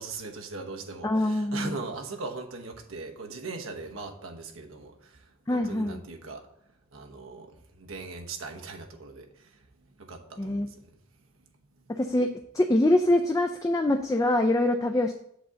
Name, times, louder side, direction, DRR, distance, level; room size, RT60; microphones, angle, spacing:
voice 1, 0.0-5.1 5.5-6.4 6.9-9.5 10.0-10.7, right 3 dB, 75° right, 3 dB, 0.9 m, -39 dB
voice 2, 1.0-1.8 5.5-6.0 10.4-10.7 12.0-12.3 12.5-15.1, left 1 dB, 15° left, 5 dB, 0.4 m, -24 dB
7.9 x 3.8 x 6.8 m, 0.73 s
head